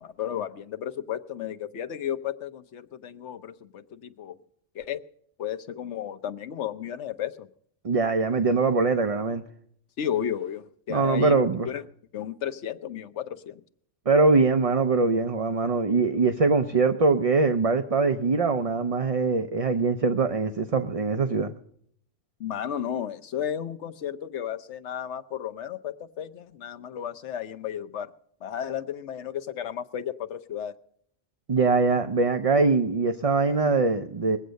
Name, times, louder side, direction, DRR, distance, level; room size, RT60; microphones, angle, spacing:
voice 1, 0.0-4.4 4.7-5.0 5.4-7.5 10.0-11.8 12.1-13.6 22.4-28.1 28.4-30.7, left 9 dB, 75° left, 1.1 m, -33 dB
voice 2, 7.8-9.4 10.9-11.7 14.1-21.5 31.5-34.4, right 4 dB, 40° right, 0.6 m, -22 dB
21.0 x 8.1 x 6.3 m
omnidirectional pair, 1.2 m